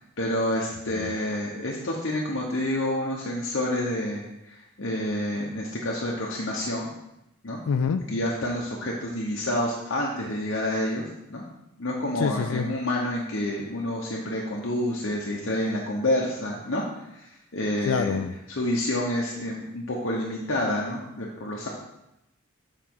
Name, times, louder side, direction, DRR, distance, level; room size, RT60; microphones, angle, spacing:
voice 1, 0.0-6.9 7.4-7.6 8.1-11.0 11.3-11.4 11.8-18.2 18.5-21.7, left 1 dB, 55° left, -3 dB, 0.9 m, -28 dB
voice 2, 7.6-8.1 12.2-12.7 17.9-18.3, left 6 dB, 75° left, 7 dB, 0.3 m, -26 dB
7.4 x 4.9 x 4.6 m, 0.87 s
head